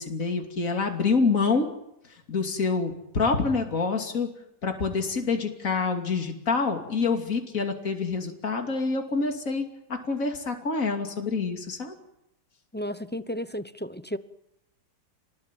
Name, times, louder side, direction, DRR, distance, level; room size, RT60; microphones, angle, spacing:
voice 1, 0.0-1.7 2.3-4.3 4.6-11.9, left 4 dB, 55° left, 4 dB, 3.2 m, -27 dB
voice 2, 12.7-14.2, equal, 10° left, 12 dB, 0.6 m, -33 dB
30.0 x 20.0 x 9.3 m, 0.83 s
omnidirectional pair, 1.7 m